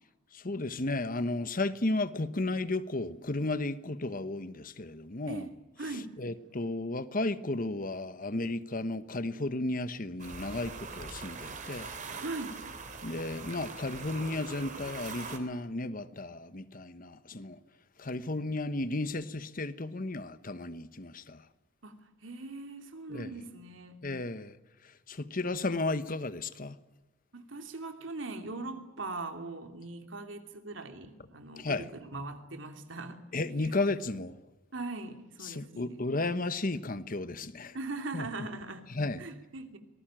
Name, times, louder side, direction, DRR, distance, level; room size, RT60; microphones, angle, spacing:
voice 1, 0.3-5.5 6.2-11.9 13.0-17.6 18.0-21.4 23.1-23.3 24.0-24.5 25.1-26.8 31.6-31.9 33.3-34.4 35.4-37.8 38.1-38.3 39.0-39.2, left 2 dB, 45° left, 1.2 m, -34 dB
voice 2, 5.8-6.1 12.2-12.6 21.8-24.0 27.3-33.7 34.7-36.0 37.7-38.9 39.2-39.8, right 2 dB, 75° right, 2.9 m, -40 dB
sound 1, 10.2-15.4, right 4 dB, 40° right, 3.3 m, -42 dB
26.0 x 19.5 x 9.0 m
head